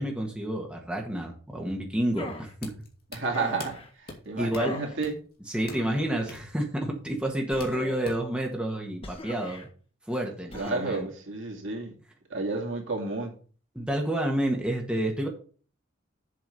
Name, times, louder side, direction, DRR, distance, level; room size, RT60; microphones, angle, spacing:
voice 1, 0.0-2.7 4.4-4.8 5.5-9.7 10.1-11.1 13.7-15.3, right 1 dB, 5° right, 1.5 m, -29 dB
sound 1, 2.2-2.5 3.3-3.9 4.5-5.0 5.7-6.3 7.5-8.2 9.0-9.7 10.5-11.0, left 2 dB, 30° left, 1.1 m, -40 dB
sound 2, 2.6-8.4, left 2 dB, 50° left, 2.2 m, -47 dB
voice 2, 3.1-5.1 10.5-11.9 12.3-13.3, right 3 dB, 70° right, 2.4 m, -31 dB
7.6 x 4.6 x 6.8 m
head